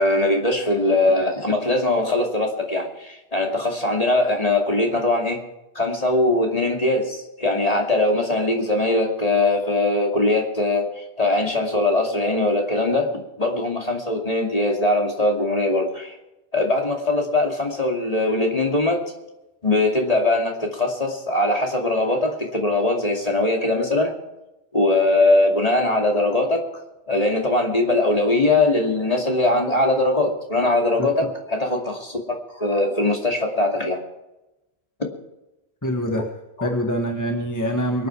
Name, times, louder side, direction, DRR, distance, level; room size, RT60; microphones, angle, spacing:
voice 1, 0.0-5.4 5.7-16.1 16.5-19.0 19.6-24.1 24.7-26.7 27.1-34.0 36.6-36.7, left 2 dB, 35° left, 1 dB, 2.6 m, -21 dB
voice 2, 35.8-36.2 36.6-38.1, equal, 15° left, 2 dB, 1.7 m, -24 dB
24.0 x 9.3 x 4.7 m, 0.97 s
omnidirectional pair, 1.1 m